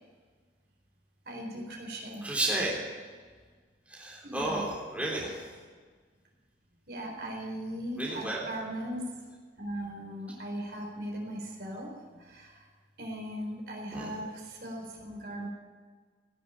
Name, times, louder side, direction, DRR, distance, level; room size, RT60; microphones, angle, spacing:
voice 1, 1.3-2.3 4.2-4.7 6.9-9.0 9.6-12.7 13.0-15.5, right 1 dB, 60° right, 0 dB, 4.2 m, -38 dB
voice 2, 2.2-2.8 3.9-5.5 8.0-8.5 13.9-14.1, right 1 dB, 10° right, -4 dB, 3.5 m, -32 dB
17.0 x 7.9 x 9.9 m, 1.5 s
head